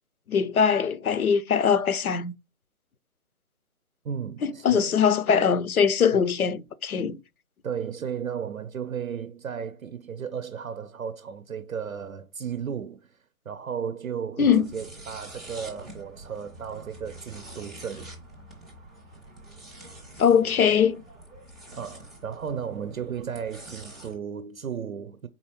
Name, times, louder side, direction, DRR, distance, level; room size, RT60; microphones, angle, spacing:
voice 1, 0.3-2.3 4.4-7.2 14.4-14.7 20.2-21.0, left 7 dB, 80° left, 0.6 m, -22 dB
voice 2, 4.0-5.0 6.1-6.3 7.6-18.1 21.7-25.3, right 7 dB, 70° right, 0.6 m, -34 dB
sound 1, 14.4-24.2, right 1 dB, ahead, 0.4 m, -46 dB
4.3 x 4.0 x 2.9 m
figure-of-eight pair, 145°, 43 cm